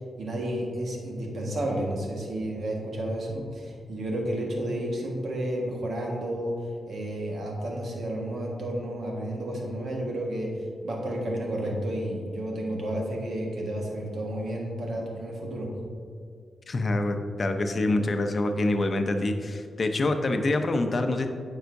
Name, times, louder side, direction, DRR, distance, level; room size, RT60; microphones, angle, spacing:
voice 1, 0.2-6.6 6.9-10.6 10.8-15.7, right 1 dB, 70° right, -1 dB, 1.5 m, -31 dB
voice 2, 16.7-21.3, left 2 dB, 45° left, 6 dB, 0.7 m, -26 dB
9.2 x 5.6 x 2.7 m, 2.2 s
cardioid pair, 70°, 0 cm